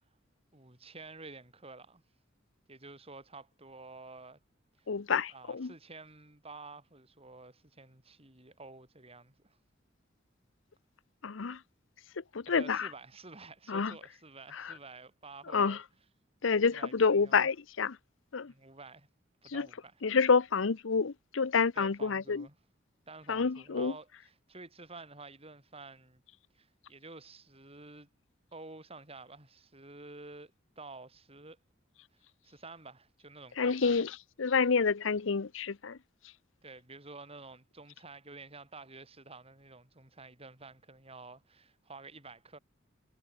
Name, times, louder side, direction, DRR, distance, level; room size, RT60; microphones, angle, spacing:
voice 1, 0.5-2.0 2.7-4.4 4.8-4.9 5.3-9.6 12.5-15.8 16.7-17.5 18.5-19.1 19.4-20.0 21.7-22.6 23.1-26.2 26.5-28.1 28.5-31.6 32.4-34.1 36.6-42.6, right 3 dB, 30° right, 5.7 m, -50 dB
voice 2, 4.9-5.7 11.2-11.6 12.3-12.9 13.7-13.9 15.5-15.8 16.4-18.0 18.3-18.5 19.5-19.7 20.0-22.4 23.3-23.9 33.6-34.1 34.4-36.0, left 5 dB, 75° left, 0.7 m, -28 dB
head